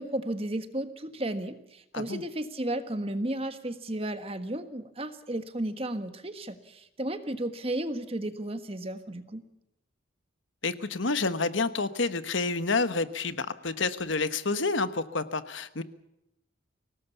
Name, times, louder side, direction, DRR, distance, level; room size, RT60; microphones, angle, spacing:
voice 1, 0.0-9.4, right 1 dB, 30° right, 9 dB, 1.5 m, -33 dB
voice 2, 10.6-15.8, left 3 dB, 70° left, 12 dB, 1.3 m, -29 dB
25.0 x 18.5 x 7.1 m, 0.83 s
head